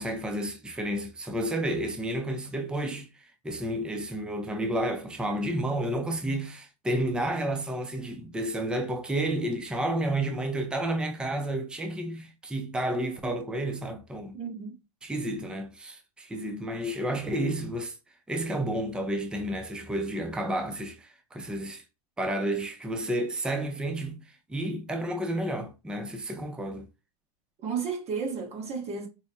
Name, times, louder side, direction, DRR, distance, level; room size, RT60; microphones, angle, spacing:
voice 1, 0.0-14.4 15.0-18.0 18.3-21.8 22.2-24.2 24.5-26.9, right 1 dB, 5° right, 0.5 m, -31 dB
voice 2, 14.3-14.8 27.6-29.1, right 5 dB, 35° right, 1.2 m, -33 dB
4.7 x 2.1 x 2.7 m
hypercardioid pair, 115°, 19 cm